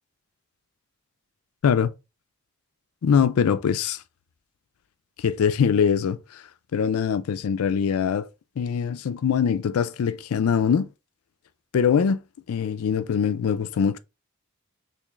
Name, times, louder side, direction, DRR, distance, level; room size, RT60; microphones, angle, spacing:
voice 1, 3.0-4.0 5.2-6.4 6.7-8.3 8.6-10.9 11.7-12.2 12.5-14.0, left 7 dB, 80° left, 0.4 m, -22 dB
3.1 x 2.9 x 3.5 m
head